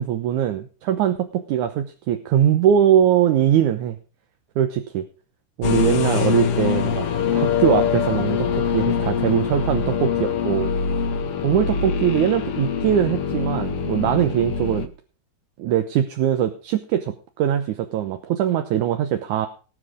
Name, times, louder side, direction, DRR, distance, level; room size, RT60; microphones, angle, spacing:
voice 1, 0.0-4.0 4.6-5.0 5.6-7.1 7.3-10.7 11.4-14.9 15.6-19.5, right 10 dB, 75° right, 7 dB, 2.4 m, -21 dB
sound 1, 5.6-14.9, left 7 dB, 60° left, 1.8 m, -23 dB
19.0 x 7.5 x 5.0 m, 0.37 s
omnidirectional pair, 3.6 m